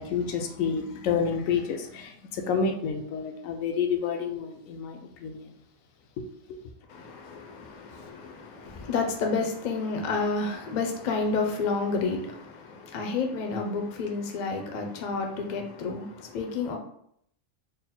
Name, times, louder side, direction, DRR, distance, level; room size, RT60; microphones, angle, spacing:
voice 1, 0.0-5.5 6.2-6.3, left 6 dB, 80° left, 1.0 m, -29 dB
voice 2, 6.9-16.8, left 4 dB, 50° left, 0.6 m, -30 dB
3.9 x 2.1 x 4.2 m
omnidirectional pair, 1.4 m